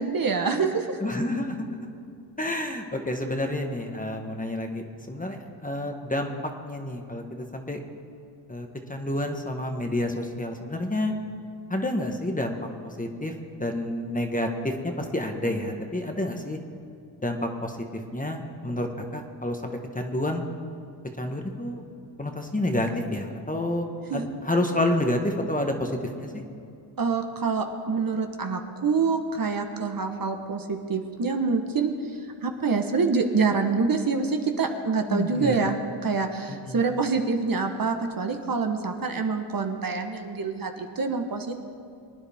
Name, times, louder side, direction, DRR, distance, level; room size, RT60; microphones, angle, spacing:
voice 1, 0.0-1.0 24.1-24.2 27.0-41.6, right 4 dB, 45° right, 5 dB, 1.2 m, -26 dB
voice 2, 1.0-1.7 2.4-6.3 6.6-7.8 8.5-11.1 11.7-12.6 12.8-13.3 13.6-16.6 17.2-20.4 21.2-21.8 22.2-23.9 24.1-25.9 26.2-26.4 35.1-35.7 36.5-36.8, left 1 dB, 15° left, 3 dB, 1.4 m, -29 dB
23.5 x 9.9 x 3.6 m, 2.5 s
cardioid pair, 70°, 47 cm